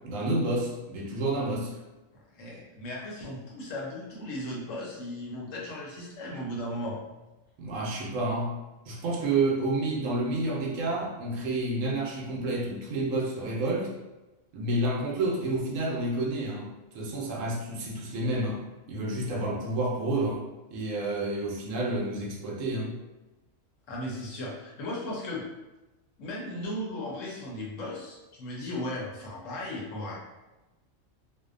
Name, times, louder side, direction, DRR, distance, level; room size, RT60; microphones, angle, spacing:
voice 1, 0.0-1.7 7.6-8.5 8.9-13.9 14.5-16.7 16.9-18.6 18.9-20.4 20.7-23.0, right 2 dB, 75° right, -3 dB, 0.9 m, -29 dB
voice 2, 2.1-7.0 23.9-25.5 26.2-30.2, left 1 dB, 70° left, -3 dB, 0.9 m, -36 dB
2.6 x 2.0 x 2.4 m, 1.1 s
omnidirectional pair, 1.4 m